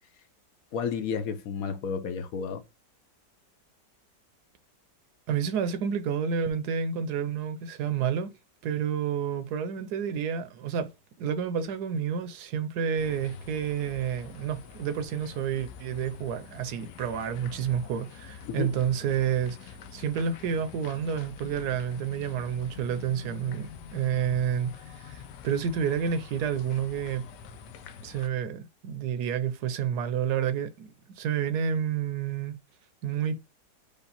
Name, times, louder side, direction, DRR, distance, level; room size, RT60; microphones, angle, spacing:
voice 1, 0.7-2.6 18.5-18.7, left 6 dB, 65° left, 1.0 m, -31 dB
voice 2, 5.3-8.3 8.6-10.9 11.2-27.3 28.0-32.6 33.0-33.5, right 8 dB, 70° right, 1.1 m, -30 dB
sound 1, 13.0-28.3, left 7 dB, 80° left, 1.3 m, -46 dB
5.2 x 2.4 x 4.0 m
omnidirectional pair, 1.9 m